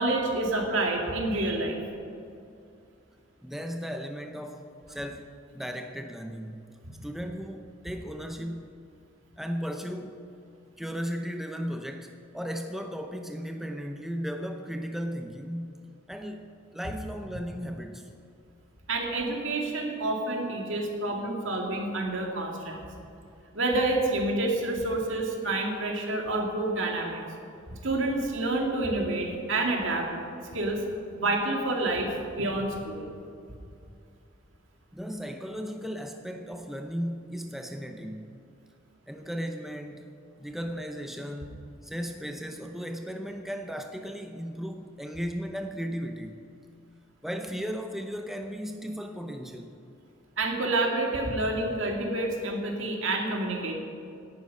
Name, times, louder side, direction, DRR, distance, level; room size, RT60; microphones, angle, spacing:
voice 1, 0.0-1.8 18.9-22.9 23.5-27.2 27.7-30.1 30.5-30.8 31.1-33.1 50.4-53.7, right 2 dB, 65° right, 1 dB, 2.5 m, -28 dB
voice 2, 3.4-5.3 5.5-8.8 9.4-10.3 10.8-15.8 16.1-16.5 16.7-18.1 34.9-38.3 39.1-40.1 40.4-46.4 47.2-49.8, equal, ahead, 4 dB, 0.6 m, -36 dB
17.5 x 11.5 x 5.6 m, 2.5 s
head